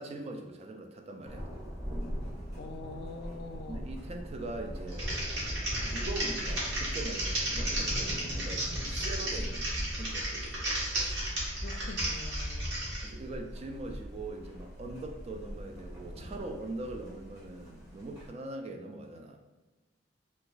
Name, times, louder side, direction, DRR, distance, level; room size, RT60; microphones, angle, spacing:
voice 1, 0.0-1.5 3.7-5.2 5.8-10.7 13.0-19.4, right 2 dB, 35° right, 3 dB, 0.3 m, -42 dB
Thunder, 1.3-18.3, equal, 15° right, 1.3 m, -41 dB
voice 2, 2.6-3.9 11.5-12.8, left 3 dB, 60° left, 6 dB, 0.3 m, -44 dB
Typing, 4.9-13.1, right 1 dB, 65° right, 1.2 m, -33 dB
2.8 x 2.3 x 3.8 m, 1.2 s
head